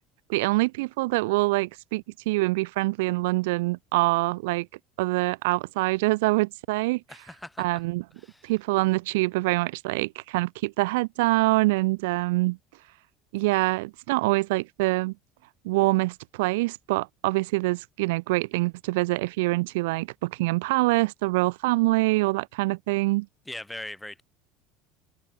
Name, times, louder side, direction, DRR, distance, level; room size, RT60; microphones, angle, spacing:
voice 1, 0.3-4.7 5.0-7.0 7.6-8.0 8.4-12.6 13.3-15.1 15.6-23.3, right 22 dB, 80° right, 1.8 m, -25 dB
voice 2, 7.1-7.8 8.2-8.5 23.5-24.2, left 1 dB, 5° left, 3.0 m, -40 dB
supercardioid pair, 100°, 0 cm